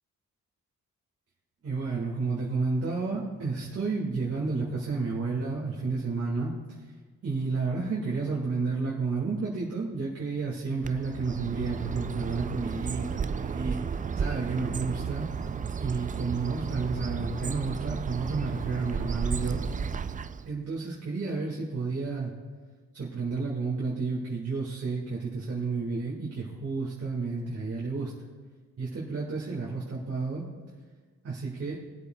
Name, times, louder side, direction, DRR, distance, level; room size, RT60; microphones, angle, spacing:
voice 1, 1.6-6.5 7.2-13.8 14.2-15.3 15.8-19.6 20.5-22.3 22.9-28.1 28.8-30.5 31.2-31.8, right 4 dB, 50° right, -4 dB, 1.9 m, -31 dB
Bird, 10.8-20.5, right 6 dB, 25° right, 0.3 m, -33 dB
22.0 x 8.3 x 2.3 m, 1.4 s
cardioid pair, 105°, 31 cm